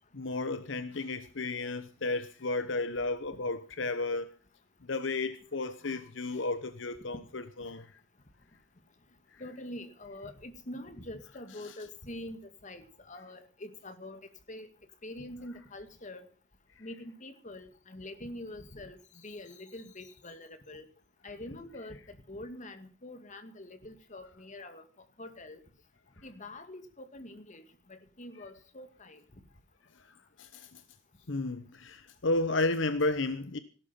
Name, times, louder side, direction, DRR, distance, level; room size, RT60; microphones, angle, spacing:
voice 1, 0.1-4.3 4.9-7.9 11.6-11.7 30.4-30.8 31.3-33.6, left 2 dB, 75° left, 1.0 m, -33 dB
voice 2, 9.4-14.2 14.5-14.7 15.0-16.3 16.8-19.0 19.2-20.9 21.2-24.8 25.2-25.6 26.2-27.6 27.9-29.2, left 1 dB, 40° left, 2.2 m, -45 dB
17.0 x 12.5 x 5.9 m
head